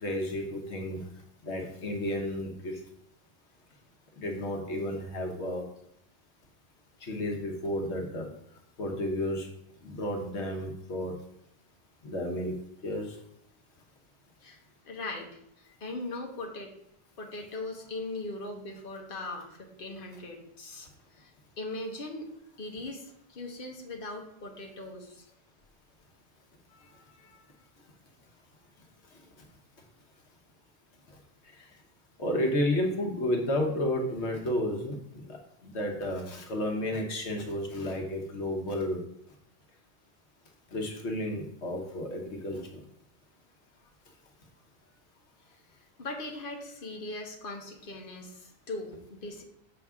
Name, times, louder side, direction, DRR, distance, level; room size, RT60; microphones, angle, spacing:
voice 1, 0.0-1.0 1.4-2.8 4.2-5.6 7.0-8.3 8.8-9.5 9.8-11.2 12.0-12.5 12.8-13.2 32.2-35.0 35.3-35.4 35.6-39.0 40.7-42.8, left 1 dB, 90° left, 2 dB, 1.4 m, -32 dB
voice 2, 14.4-15.3 15.6-16.7 17.2-22.3 22.6-25.2 26.7-27.6 45.4-45.6 46.0-49.4, left 2 dB, 55° left, 1 dB, 1.3 m, -40 dB
7.0 x 6.0 x 3.6 m, 0.74 s
omnidirectional pair, 1.1 m